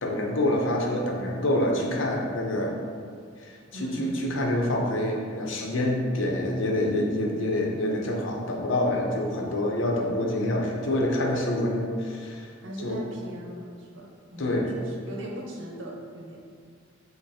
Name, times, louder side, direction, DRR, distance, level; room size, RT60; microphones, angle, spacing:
voice 1, 0.0-2.8 3.4-12.5 12.8-13.0 14.4-14.7, left 1 dB, 80° left, 0 dB, 0.7 m, -26 dB
voice 2, 3.7-4.2 12.6-16.4, equal, 75° right, -1 dB, 0.7 m, -40 dB
5.4 x 2.1 x 4.1 m, 2.2 s
head